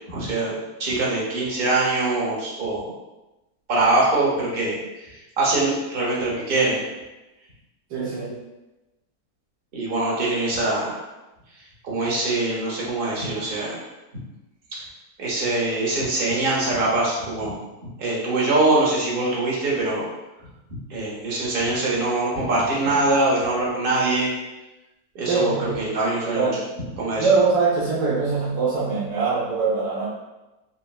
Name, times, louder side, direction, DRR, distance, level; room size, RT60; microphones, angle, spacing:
voice 1, 0.1-2.9 3.7-6.8 9.7-11.0 11.8-13.8 15.2-17.6 18.0-20.0 20.9-24.3 25.1-26.5 27.0-27.3, right 2 dB, 50° right, -4 dB, 0.8 m, -23 dB
voice 2, 7.9-8.4 25.3-25.8 26.2-26.6 27.2-30.1, right 4 dB, 80° right, -6 dB, 1.2 m, -22 dB
3.9 x 2.1 x 2.3 m, 1.0 s
omnidirectional pair, 1.7 m